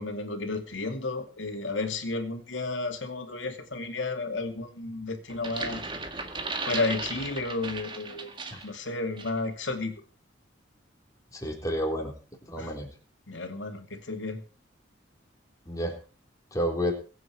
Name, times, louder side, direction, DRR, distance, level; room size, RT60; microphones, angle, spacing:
voice 1, 0.0-5.8 6.6-9.9 12.6-12.7 13.3-14.4, left 3 dB, 90° left, 6 dB, 2.5 m, -32 dB
sound 1, 5.3-8.8 9.2-9.4, right 3 dB, 25° right, 1.9 m, -36 dB
voice 2, 11.3-12.1 12.5-12.9 15.7-15.9 16.5-16.9, equal, 20° left, 0 dB, 4.0 m, -30 dB
22.0 x 8.5 x 4.6 m, 0.37 s
head